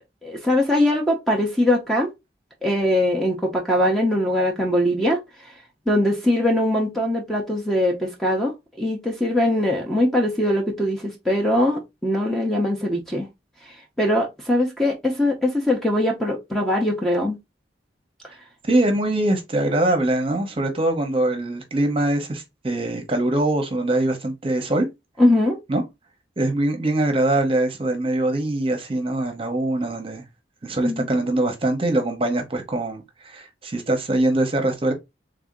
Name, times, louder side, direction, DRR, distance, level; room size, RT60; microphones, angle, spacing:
voice 1, 0.2-2.1 2.6-5.2 5.9-13.3 14.0-17.4 25.2-25.6 30.8-31.1, left 1 dB, ahead, 0.7 m, -21 dB
voice 2, 18.6-24.9 25.7-25.8 26.4-30.2 30.6-34.9, right 1 dB, 30° right, 0.9 m, -23 dB
3.5 x 2.7 x 3.7 m
head